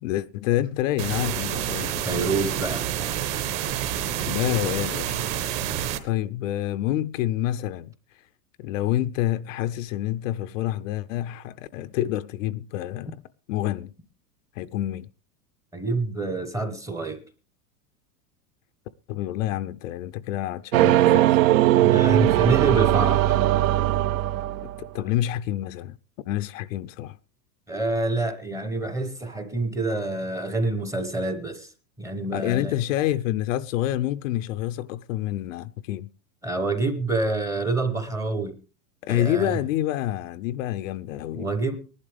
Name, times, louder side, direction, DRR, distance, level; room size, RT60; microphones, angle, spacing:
voice 1, 0.0-2.2 4.2-5.2 6.0-7.9 8.6-13.2 13.5-13.9 14.6-15.1 19.1-21.4 24.8-25.9 26.3-27.2 32.3-36.1 39.0-41.5, left 13 dB, 55° left, 0.5 m, -27 dB
sound 1, 1.0-6.0, right 10 dB, 40° right, 1.4 m, -28 dB
voice 2, 1.9-3.2 15.7-17.2 21.7-23.4 27.7-31.7 32.0-32.7 36.4-38.5 39.1-39.6 41.3-41.8, right 3 dB, 5° right, 0.7 m, -27 dB
sound 2, 20.7-24.9, right 14 dB, 55° right, 0.6 m, -19 dB
19.5 x 11.5 x 3.4 m
supercardioid pair, 165°, 48 cm